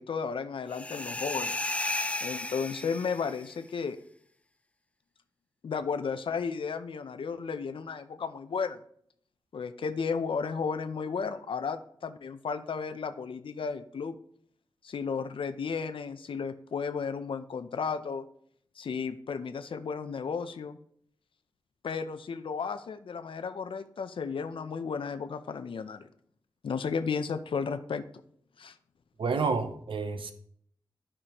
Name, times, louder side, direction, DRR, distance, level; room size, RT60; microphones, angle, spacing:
voice 1, 0.0-1.6 2.2-4.0 5.6-8.8 9.5-14.2 14.8-18.2 18.8-20.8 21.8-26.1 26.6-28.0 28.6-28.7, left 5 dB, 75° left, 0.5 m, -33 dB
sound 1, 0.7-3.4, left 2 dB, 15° left, 0.3 m, -34 dB
voice 2, 29.2-30.3, right 4 dB, 75° right, 0.7 m, -29 dB
12.0 x 4.9 x 2.9 m
wide cardioid pair, 70°, 9 cm